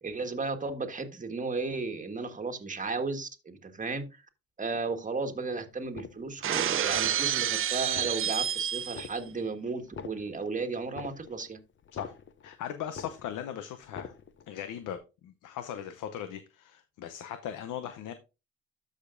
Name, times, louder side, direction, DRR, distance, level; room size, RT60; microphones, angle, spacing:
voice 1, 0.0-4.2 4.6-11.6, right 4 dB, 25° right, 1.4 m, -34 dB
sound 1, 5.8-6.5 6.9-7.5 7.8-8.5 8.9-9.5 9.8-12.6 12.9-13.5 13.8-14.5 14.9-15.0, left 6 dB, 40° left, 0.7 m, -45 dB
Shatter, 6.4-9.2, right 10 dB, 45° right, 0.5 m, -29 dB
voice 2, 12.4-14.1 14.5-18.1, left 9 dB, 85° left, 0.8 m, -39 dB
13.0 x 5.1 x 2.5 m
cardioid pair, 90°, 30 cm